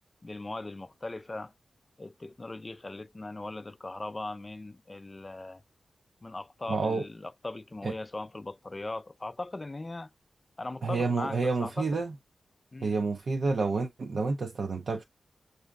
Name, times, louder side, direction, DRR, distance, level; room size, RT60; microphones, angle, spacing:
voice 1, 0.2-1.5 2.0-5.6 6.2-10.1 10.6-12.0 12.7-13.0, left 2 dB, 30° left, 0.3 m, -39 dB
voice 2, 6.7-7.0 7.8-7.9 10.8-12.1 12.8-15.0, right 3 dB, 65° right, 0.6 m, -29 dB
6.2 x 2.6 x 2.3 m
wide cardioid pair, 90°, 0 cm